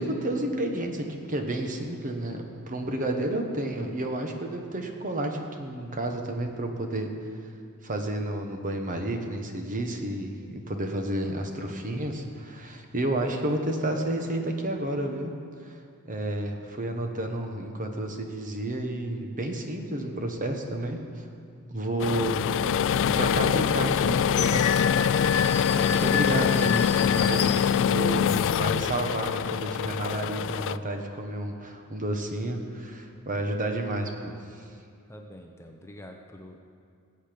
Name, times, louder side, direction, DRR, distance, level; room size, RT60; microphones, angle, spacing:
voice 1, 0.0-7.1 7.8-15.3 15.6-15.8 16.0-21.2 21.7-24.7 25.9-34.3, right 1 dB, 35° right, 4 dB, 1.2 m, -31 dB
sound 1, 22.0-30.8, left 8 dB, 60° left, 0.3 m, -24 dB
sound 2, 24.3-28.4 28.9-29.5, left 8 dB, 80° left, 0.7 m, -31 dB
voice 2, 35.1-36.6, equal, 10° left, 2 dB, 0.8 m, -46 dB
20.0 x 8.2 x 5.2 m, 2.4 s
head